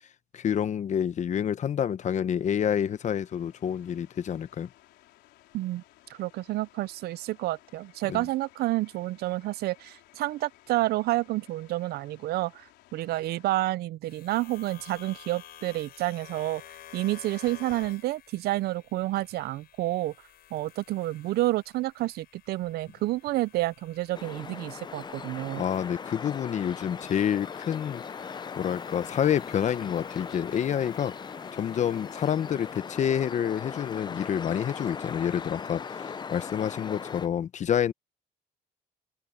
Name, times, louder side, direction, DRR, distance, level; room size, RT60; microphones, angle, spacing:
voice 1, 0.3-4.7 8.1-8.2 25.6-28.0 28.6-31.1 31.5-37.9, left 9 dB, 45° left, 0.9 m, -28 dB
sound 1, 2.0-13.6, left 16 dB, 85° left, 4.4 m, -59 dB
voice 2, 6.1-16.6 16.9-20.1 20.5-25.6, right 17 dB, 70° right, 0.5 m, -29 dB
sound 2, 14.1-32.8, left 11 dB, 65° left, 6.9 m, -52 dB
sound 3, 24.1-37.3, left 6 dB, 25° left, 0.6 m, -39 dB
open air
cardioid pair, 110°, 17 cm